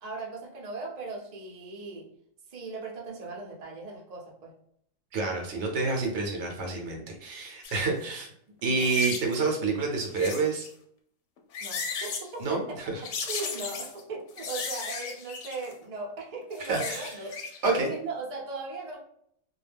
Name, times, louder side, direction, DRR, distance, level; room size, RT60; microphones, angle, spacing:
voice 1, 0.0-2.1 2.5-4.5 8.7-9.0 11.6-12.8 13.3-17.3 17.7-19.0, right 3 dB, 45° right, -2 dB, 0.6 m, -38 dB
voice 2, 5.1-8.3 8.6-10.7 12.4-13.0 16.6-17.1 17.6-17.9, right 3 dB, 65° right, 1 dB, 0.8 m, -28 dB
sound 1, 7.6-7.8 8.8-9.4 10.0-10.7 11.4-12.3 13.0-14.0 14.4-15.7 16.4-17.6 17.9-18.0, left 5 dB, 70° left, 0.8 m, -35 dB
2.3 x 2.2 x 3.3 m, 0.68 s
omnidirectional pair, 1.3 m